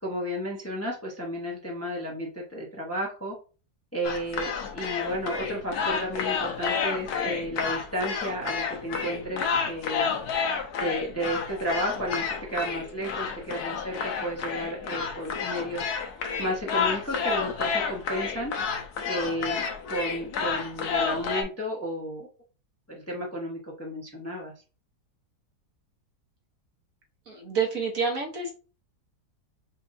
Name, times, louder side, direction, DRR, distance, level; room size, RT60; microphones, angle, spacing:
voice 1, 0.0-3.3 3.9-10.1 10.8-15.9 16.4-18.5 19.0-22.3 22.9-24.5, equal, 10° left, -3 dB, 0.9 m, -32 dB
sound 1, 4.0-21.4, left 6 dB, 75° left, 1.3 m, -30 dB
voice 2, 27.3-28.5, right 5 dB, 60° right, 1 dB, 1.4 m, -28 dB
5.7 x 2.6 x 2.6 m, 0.34 s
omnidirectional pair, 1.7 m